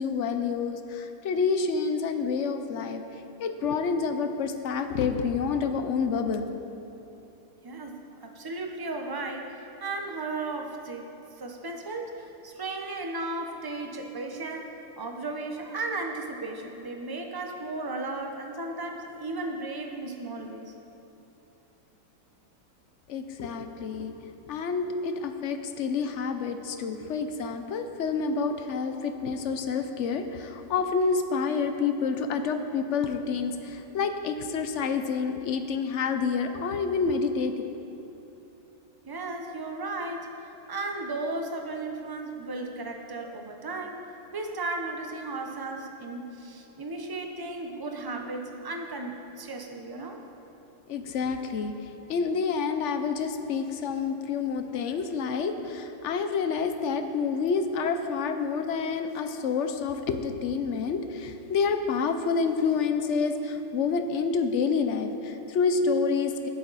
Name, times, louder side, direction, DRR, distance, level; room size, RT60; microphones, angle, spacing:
voice 1, 0.0-3.0 3.4-6.5 23.1-24.1 24.5-37.6 50.9-66.5, left 5 dB, 60° left, 7 dB, 0.8 m, -28 dB
voice 2, 7.6-20.7 39.0-44.0 44.3-50.2, right 2 dB, 20° right, 3 dB, 0.5 m, -35 dB
15.0 x 11.5 x 4.1 m, 2.9 s
omnidirectional pair, 2.0 m